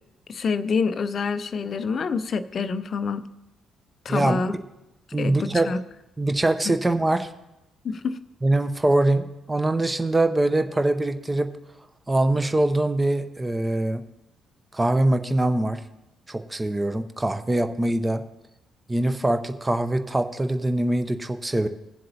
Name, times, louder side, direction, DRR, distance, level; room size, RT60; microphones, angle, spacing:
voice 1, 0.3-3.3 4.0-4.6 5.2-5.8 6.6-6.8 7.8-8.2, left 5 dB, 45° left, 13 dB, 0.4 m, -27 dB
voice 2, 4.1-4.6 5.1-5.7 6.2-7.3 8.4-11.5 12.1-14.0 14.7-15.8 16.3-18.2 18.9-21.7, right 1 dB, 15° right, 9 dB, 0.7 m, -23 dB
19.0 x 7.5 x 2.8 m, 0.93 s
figure-of-eight pair, 45°, 0 cm